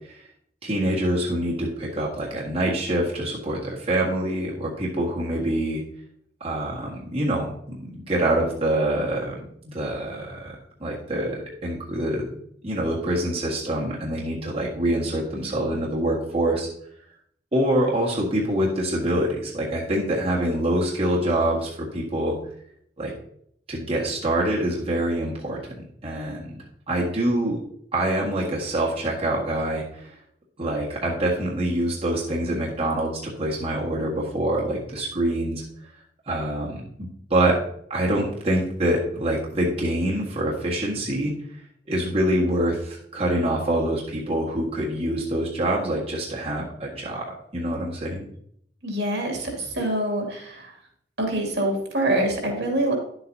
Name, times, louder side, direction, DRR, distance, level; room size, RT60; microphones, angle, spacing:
voice 1, 0.6-5.8 6.4-16.7 17.5-22.4 23.0-23.1 23.7-26.5 26.9-27.6 27.9-30.1 30.6-35.6 36.3-37.6 37.9-41.3 41.9-48.3, right 1 dB, 35° right, -5 dB, 1.7 m, -25 dB
voice 2, 48.8-50.7 51.2-52.9, right 1 dB, 70° right, 0 dB, 2.2 m, -25 dB
10.5 x 7.8 x 2.7 m, 0.67 s
head